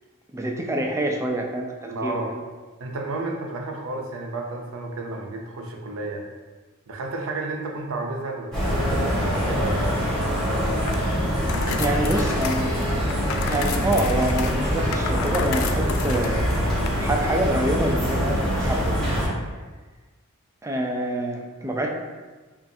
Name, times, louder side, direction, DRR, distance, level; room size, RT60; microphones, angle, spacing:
voice 1, 0.3-1.7 2.0-2.2 11.8-12.9 13.5-16.4 17.0-19.4 20.6-21.9, right 1 dB, 15° right, 1 dB, 0.4 m, -26 dB
voice 2, 1.8-2.3 2.8-6.3 6.9-10.0 10.3-10.5 11.7-12.2, right 2 dB, 65° right, 1 dB, 0.6 m, -32 dB
sound 1, 8.5-19.3, equal, 5° left, 1.3 m, -24 dB
sound 2, 10.8-16.9, left 6 dB, 65° left, 0.3 m, -34 dB
5.4 x 2.5 x 2.7 m, 1.3 s
head